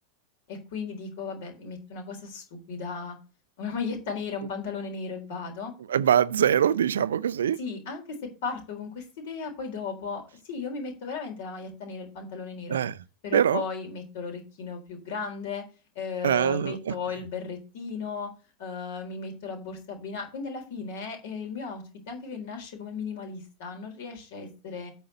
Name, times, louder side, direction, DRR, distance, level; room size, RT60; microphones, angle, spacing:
voice 1, 0.5-3.2 3.6-5.7 7.6-8.2 8.4-10.2 10.5-12.8 13.2-15.6 16.0-18.3 18.6-24.9, left 5 dB, 55° left, 3.9 m, -35 dB
voice 2, 5.9-7.6 12.7-12.9 13.3-13.6 16.2-16.9, right 9 dB, 65° right, 0.5 m, -23 dB
8.7 x 5.5 x 6.6 m
figure-of-eight pair, 90°, 0 cm